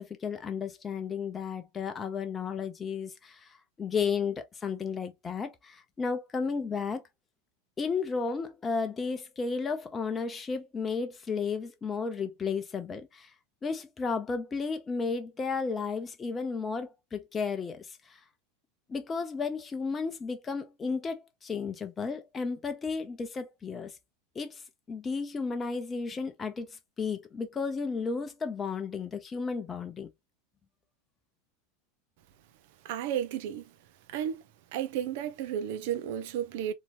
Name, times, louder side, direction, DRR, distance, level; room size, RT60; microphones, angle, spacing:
voice 1, 0.0-7.0 7.8-13.3 13.6-18.2 18.9-23.9 24.3-24.6 24.9-30.1, left 5 dB, 20° left, 0.8 m, -33 dB
voice 2, 32.8-33.6 34.1-34.4 34.7-36.7, right 10 dB, 55° right, 0.7 m, -32 dB
4.0 x 3.0 x 2.5 m
figure-of-eight pair, 85°, 0 cm